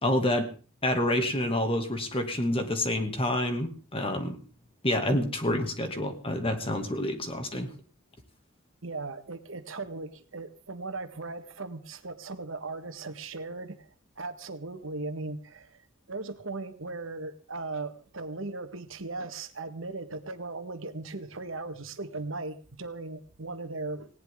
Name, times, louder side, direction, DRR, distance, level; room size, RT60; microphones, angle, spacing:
voice 1, 0.0-0.5 0.8-4.4 4.8-7.7, left 1 dB, 25° left, 6 dB, 2.3 m, -28 dB
voice 2, 8.8-13.9 14.2-15.8 16.1-24.1, right 3 dB, 65° right, 8 dB, 1.7 m, -38 dB
19.5 x 17.5 x 3.8 m, 0.38 s
head